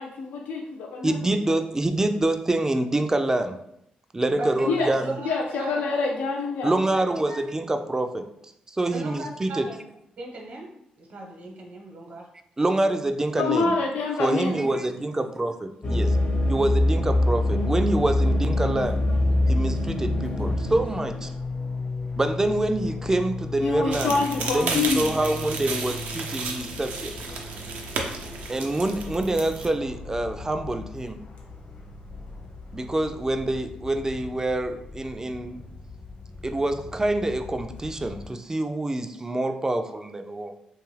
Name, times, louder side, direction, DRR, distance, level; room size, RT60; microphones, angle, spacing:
voice 1, 0.0-1.2 4.7-4.9 5.2-6.7 13.3-14.7 23.6-25.1, left 4 dB, 90° left, 0 dB, 0.3 m, -26 dB
voice 2, 1.0-3.6 4.1-5.2 6.6-8.3 8.7-9.7 12.6-13.7 14.2-16.2 16.5-19.0 19.5-21.3 22.1-27.1 28.5-31.2 32.7-35.6 36.4-40.5, right 2 dB, 20° right, 8 dB, 0.3 m, -26 dB
voice 3, 4.3-5.8 6.9-7.4 8.9-9.8 10.2-10.7 11.0-12.3, right 2 dB, 65° right, -1 dB, 0.9 m, -37 dB
sound 1, 15.8-21.3, left 1 dB, 40° left, 0.6 m, -23 dB
Fixed-wing aircraft airplane, 18.5-38.3, left 4 dB, 65° left, 0.9 m, -38 dB
sound 2, 23.9-29.7, right 4 dB, 80° right, 0.5 m, -33 dB
2.6 x 2.4 x 3.1 m, 0.79 s
cardioid pair, 65°, 3 cm